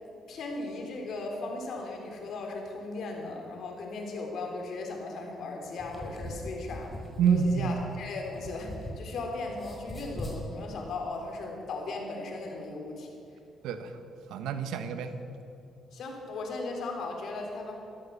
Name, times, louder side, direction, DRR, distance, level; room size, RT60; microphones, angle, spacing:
voice 1, 0.3-6.9 7.3-13.1 15.9-17.8, left 3 dB, 70° left, 1 dB, 3.8 m, -37 dB
sound 1, 5.7-9.2 9.5-10.4, equal, 15° left, 4.8 m, -41 dB
voice 2, 7.2-7.8 13.6-15.1, right 6 dB, 90° right, 9 dB, 1.2 m, -28 dB
14.0 x 14.0 x 7.1 m, 2.8 s
cardioid pair, 90°, 0 cm